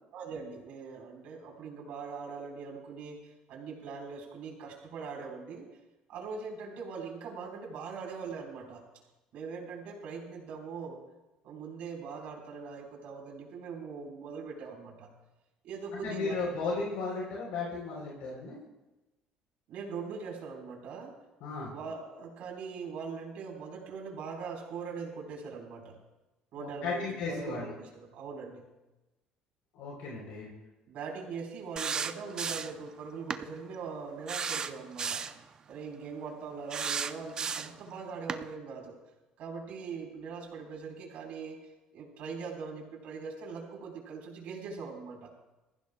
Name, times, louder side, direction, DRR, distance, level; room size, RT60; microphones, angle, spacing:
voice 1, 0.1-5.7 6.1-8.8 9.3-11.0 11.4-15.1 15.6-16.7 19.7-21.2 21.7-26.0 26.5-28.7 30.9-39.0 39.4-41.6 41.9-45.3, right 5 dB, 65° right, 0 dB, 4.0 m, -41 dB
voice 2, 15.9-18.6 21.4-21.7 26.6-27.7 29.7-30.5, left 4 dB, 80° left, -3 dB, 3.5 m, -35 dB
sound 1, 31.8-32.8 33.3-33.4 34.3-35.4 36.7-37.8 38.3-38.4, right 6 dB, 30° right, 0.5 m, -34 dB
22.0 x 15.0 x 2.3 m, 1.0 s
cardioid pair, 130°, 2 cm